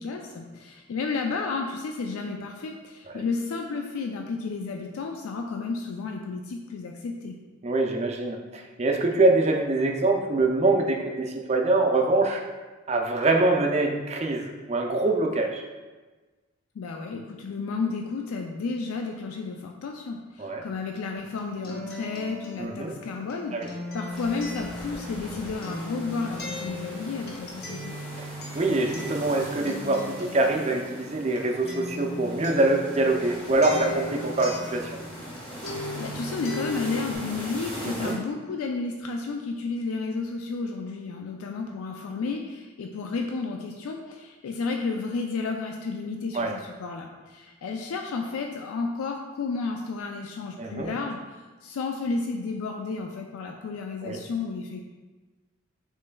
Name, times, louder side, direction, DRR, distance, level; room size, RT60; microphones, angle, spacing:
voice 1, 0.0-7.4 16.8-27.9 36.0-51.2 51.6-54.8, left 4 dB, 90° left, 2 dB, 0.4 m, -32 dB
voice 2, 7.6-12.4 12.9-15.6 20.4-20.7 22.6-22.9 23.5-23.7 28.2-28.3 28.5-34.9 37.8-38.2 46.3-46.6 50.6-50.9 54.0-54.2, right 2 dB, 30° right, 2 dB, 0.4 m, -24 dB
Acoustic guitar, 21.2-35.4 35.6-37.1, left 1 dB, 50° left, 0.8 m, -38 dB
sound 1, 24.1-38.1, equal, 5° left, 1.4 m, -40 dB
6.5 x 3.1 x 2.2 m, 1.3 s
head